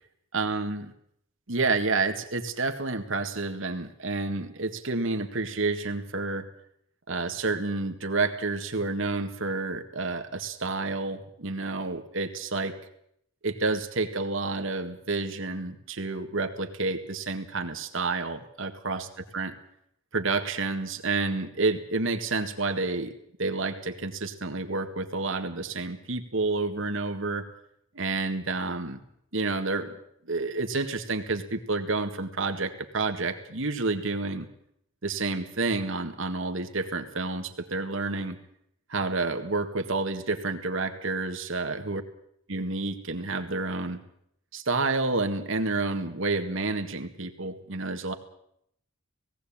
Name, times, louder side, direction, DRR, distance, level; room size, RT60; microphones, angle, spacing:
voice 1, 0.3-0.9 1.5-6.5 7.1-12.8 13.4-19.5 20.1-23.1 23.4-27.5 27.9-29.0 29.3-29.9 30.3-34.5 35.0-38.4 38.9-42.0 42.5-44.0 44.5-48.1, right 3 dB, 70° right, 6 dB, 1.8 m, -29 dB
18.5 x 16.5 x 8.8 m, 0.72 s
head